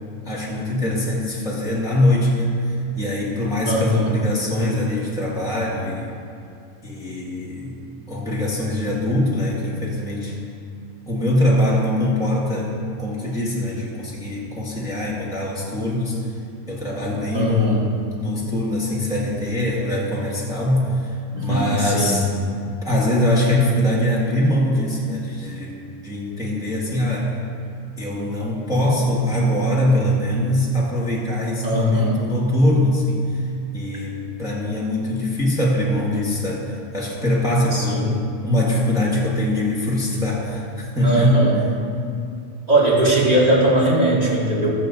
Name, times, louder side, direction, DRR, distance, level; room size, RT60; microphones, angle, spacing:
voice 1, 0.2-6.1 6.8-7.8 8.1-10.4 11.1-16.2 16.7-21.2 21.4-22.3 22.8-25.8 26.0-27.4 28.0-38.1 38.4-41.4 43.0-43.2, left 1 dB, 5° right, -6 dB, 1.8 m, -22 dB
voice 2, 3.7-4.1 17.3-17.8 21.3-22.2 31.6-32.2 37.7-38.3 41.0-41.6 42.7-44.8, right 1 dB, 30° right, -6 dB, 2.7 m, -19 dB
20.0 x 7.2 x 4.0 m, 2.5 s
omnidirectional pair, 1.5 m